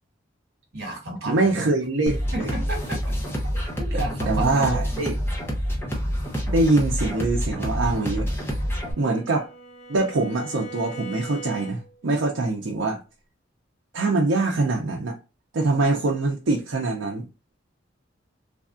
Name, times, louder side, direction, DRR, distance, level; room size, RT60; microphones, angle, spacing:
voice 1, 0.7-1.7 2.3-3.1 3.5-5.0, right 1 dB, 60° right, 1.4 m, -32 dB
voice 2, 1.3-2.5 4.3-5.1 6.5-8.3 9.0-9.5 9.9-13.0 13.9-15.1 15.5-17.3, right 2 dB, 75° right, 0.5 m, -23 dB
sound 1, 2.1-8.9, equal, 10° left, 0.7 m, -27 dB
Bowed string instrument, 8.2-12.1, right 1 dB, 60° left, 1.0 m, -42 dB
3.3 x 2.3 x 2.4 m
head